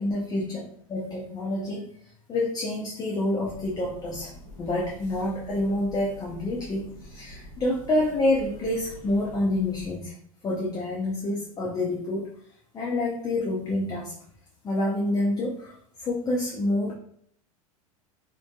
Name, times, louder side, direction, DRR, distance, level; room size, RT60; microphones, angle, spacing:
voice 1, 0.0-1.9 2.3-10.1 10.4-12.3 12.7-14.1 14.6-16.9, left 1 dB, 20° left, -3 dB, 0.5 m, -28 dB
sound 1, 3.4-9.9, equal, 40° left, 1.1 m, -46 dB
2.5 x 2.2 x 2.2 m, 0.65 s
hypercardioid pair, 100°, 18 cm